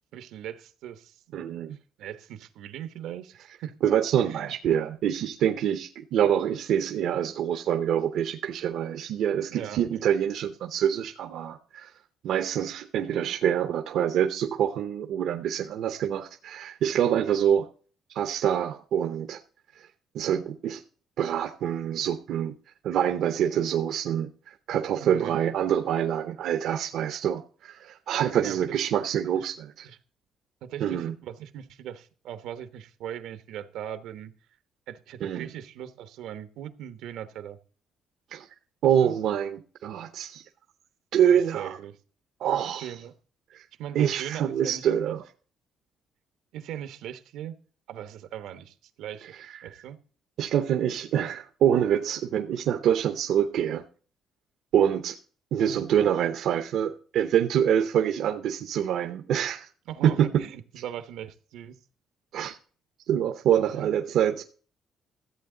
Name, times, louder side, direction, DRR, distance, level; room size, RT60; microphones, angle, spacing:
voice 1, 0.1-1.4 2.0-3.7 4.2-4.5 9.5-10.0 25.0-25.4 28.4-28.8 29.3-29.5 29.8-30.0 30.6-34.3 34.9-37.6 38.8-39.1 41.2-42.0 42.8-43.1 43.8-45.1 46.5-47.6 47.9-49.3 49.6-50.0 55.7-55.9 59.9-61.8 63.7-63.9, right 10 dB, 85° right, 1.0 m, -39 dB
voice 2, 1.3-1.8 3.8-11.9 12.2-17.7 18.1-19.4 19.8-19.9 20.1-20.8 21.2-22.5 22.8-29.9 30.8-31.1 35.2-35.5 38.3-38.5 38.8-40.5 41.1-41.8 42.4-42.9 43.5-43.6 43.9-45.2 49.4-49.5 50.4-53.8 54.7-55.2 55.5-59.7 60.0-60.4 62.3-62.6 63.1-64.4, right 9 dB, 70° right, 0.8 m, -26 dB
13.5 x 8.0 x 3.8 m
cardioid pair, 145°, 0 cm